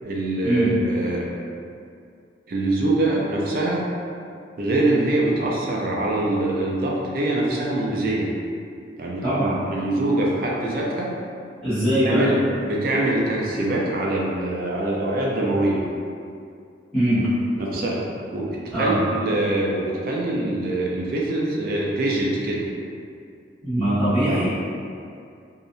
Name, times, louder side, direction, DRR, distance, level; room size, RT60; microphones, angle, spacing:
voice 1, 0.0-1.3 2.5-3.9 4.6-8.3 9.0-9.4 9.7-11.1 11.9-15.8 17.6-22.7, right 1 dB, 50° right, -3 dB, 0.4 m, -24 dB
voice 2, 9.2-9.6 11.6-12.3 16.9-17.2 18.7-19.0 23.6-24.5, right 1 dB, 5° left, -18 dB, 0.9 m, -21 dB
2.7 x 2.0 x 2.5 m, 2.4 s
head